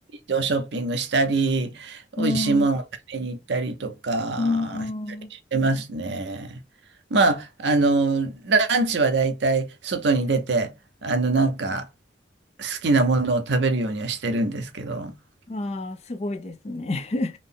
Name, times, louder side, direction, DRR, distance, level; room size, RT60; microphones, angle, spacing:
voice 1, 0.3-2.8 3.1-4.8 5.3-6.6 7.1-10.7 11.0-11.9 12.6-15.1, right 3 dB, 75° right, 0.6 m, -23 dB
voice 2, 2.2-2.7 4.4-5.3 15.5-17.4, left 2 dB, 35° left, 0.4 m, -28 dB
3.7 x 2.0 x 3.7 m
head